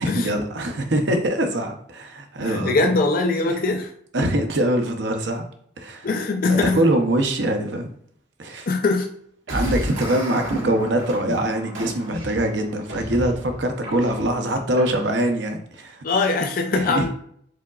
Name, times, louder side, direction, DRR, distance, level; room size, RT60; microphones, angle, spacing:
voice 1, 0.0-2.9 4.1-5.4 5.8-6.1 6.5-7.9 8.4-8.7 9.5-16.0 16.8-17.1, right 1 dB, 65° right, 5 dB, 0.7 m, -23 dB
voice 2, 2.4-3.9 6.0-6.8 8.7-9.1 16.0-17.1, left 3 dB, 45° left, 4 dB, 0.4 m, -22 dB
sound 1, 9.5-15.3, equal, 85° right, 1.8 m, -32 dB
4.8 x 3.9 x 2.4 m, 0.67 s
head